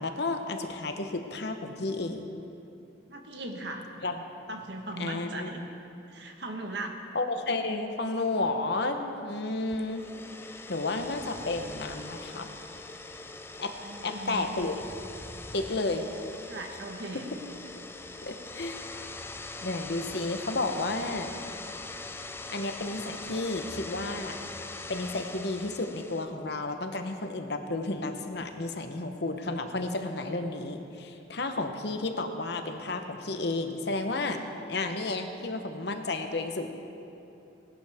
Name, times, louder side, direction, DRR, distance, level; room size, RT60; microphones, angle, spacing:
voice 1, 0.0-2.3 4.0-4.2 5.0-5.5 7.1-10.0 10.7-12.6 13.6-13.7 14.0-14.8 15.5-16.0 18.2-18.8 19.6-21.3 22.5-24.4 24.9-34.4 34.7-36.7, left 2 dB, 60° left, 6 dB, 0.9 m, -32 dB
voice 2, 3.1-3.9 4.5-5.6 6.1-7.0 13.8-14.6 16.4-17.3, right 2 dB, 65° right, 3 dB, 1.3 m, -38 dB
sound 1, 9.7-26.3, left 3 dB, 10° left, 0.4 m, -42 dB
19.0 x 11.5 x 3.5 m, 2.8 s
head